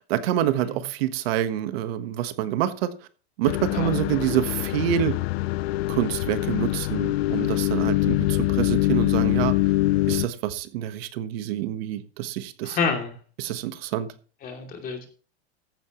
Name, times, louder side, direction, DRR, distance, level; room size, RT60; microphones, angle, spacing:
voice 1, 0.0-2.9 3.4-5.2 5.9-9.6 10.1-12.8 13.4-14.1, right 11 dB, 65° right, 1.4 m, -27 dB
sound 1, 3.4-10.3, left 18 dB, 65° left, 0.5 m, -24 dB
voice 2, 12.6-13.1 14.4-15.1, left 5 dB, 25° left, 2.8 m, -28 dB
15.0 x 11.0 x 3.1 m
supercardioid pair, 155°, 33 cm